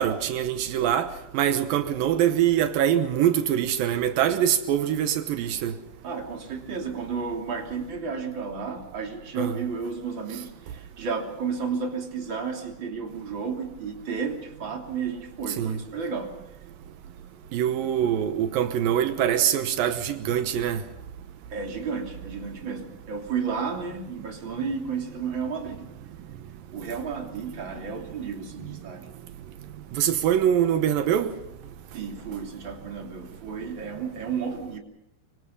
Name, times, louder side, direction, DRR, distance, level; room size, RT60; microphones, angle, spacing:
voice 1, 0.0-5.7 9.4-9.6 15.6-15.8 17.5-20.8 29.9-31.4, right 10 dB, 85° right, 2.8 m, -24 dB
voice 2, 6.0-16.4 21.5-25.9 26.7-29.1 31.9-34.8, right 5 dB, 35° right, 3.5 m, -32 dB
24.5 x 24.5 x 5.5 m
omnidirectional pair, 4.0 m